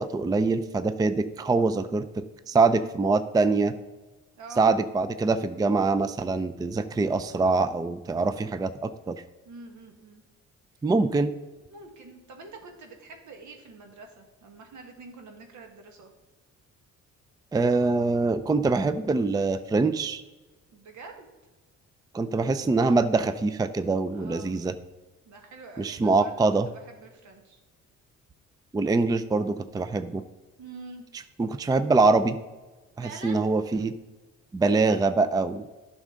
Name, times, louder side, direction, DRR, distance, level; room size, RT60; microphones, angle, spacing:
voice 1, 0.0-3.7 4.6-9.1 10.8-11.3 17.5-20.2 22.1-24.7 25.8-26.7 28.7-30.2 31.4-32.4 33.0-33.9 34.5-35.7, right 3 dB, 15° right, 12 dB, 0.4 m, -24 dB
voice 2, 2.5-2.9 4.4-4.7 9.4-10.2 11.7-16.1 20.7-21.3 24.1-24.6 25.3-26.4 26.7-27.6 30.6-31.3 33.0-33.4, right 3 dB, 75° right, 3 dB, 1.7 m, -46 dB
11.0 x 6.3 x 3.9 m, 1.2 s
cardioid pair, 90°, 30 cm